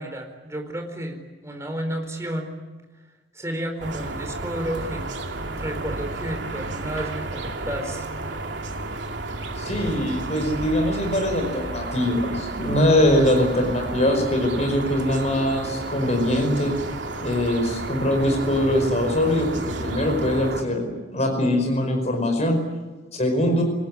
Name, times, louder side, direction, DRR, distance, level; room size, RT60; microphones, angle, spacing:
voice 1, 0.0-2.6 3.3-5.1 5.4-8.1, right 1 dB, 15° right, 4 dB, 4.4 m, -32 dB
sound 1, 3.8-20.6, right 2 dB, 80° right, 2.6 m, -32 dB
voice 2, 9.6-16.7 17.2-19.5 19.8-22.6 23.1-23.6, left 1 dB, 40° left, 3 dB, 5.1 m, -22 dB
26.5 x 19.0 x 9.7 m, 1.2 s
head